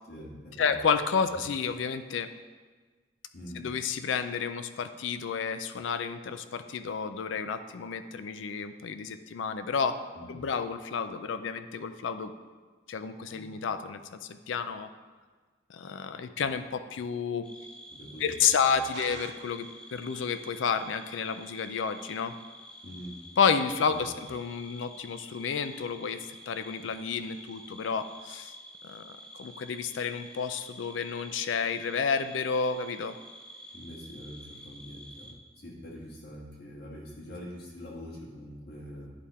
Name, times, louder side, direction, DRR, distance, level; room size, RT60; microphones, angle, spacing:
voice 1, 0.1-0.8 3.3-3.6 10.2-10.4 17.9-18.3 18.5-19.1 22.8-23.2 23.9-24.2 33.7-39.1, equal, 55° left, -3 dB, 1.6 m, -44 dB
voice 2, 0.6-2.3 3.6-10.0 10.3-12.3 12.9-14.9 15.7-17.5 18.2-22.3 23.4-28.5 28.8-33.2, left 6 dB, 85° left, 10 dB, 0.4 m, -31 dB
sound 1, 17.4-35.4, equal, 5° left, 0.6 m, -49 dB
sound 2, 18.9-20.0, right 5 dB, 60° right, 0.4 m, -45 dB
10.5 x 3.5 x 4.2 m, 1.4 s
head